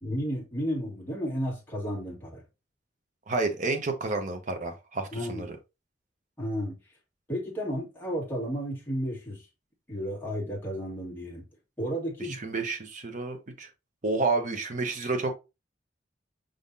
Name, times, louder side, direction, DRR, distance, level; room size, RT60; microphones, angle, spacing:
voice 1, 0.0-2.4 5.1-5.5 6.4-6.8 7.3-9.5 9.9-11.5 11.8-12.4, equal, 10° left, 1.7 m, -32 dB
voice 2, 3.3-5.5 12.4-13.7 14.0-15.3, right 3 dB, 40° right, 0.9 m, -30 dB
5.3 x 3.7 x 2.7 m
head